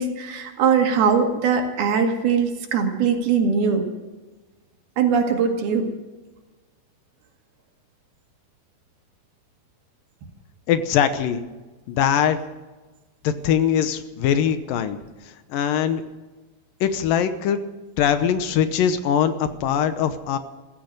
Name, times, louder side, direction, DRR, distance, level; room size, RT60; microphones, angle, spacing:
voice 1, 0.0-3.9 5.0-5.9, right 6 dB, 80° right, 3 dB, 3.9 m, -21 dB
voice 2, 10.7-11.4 11.9-12.4 13.2-16.0 16.8-17.6 18.0-20.4, left 8 dB, 75° left, 11 dB, 2.4 m, -22 dB
15.5 x 14.5 x 6.6 m, 1.2 s
omnidirectional pair, 4.3 m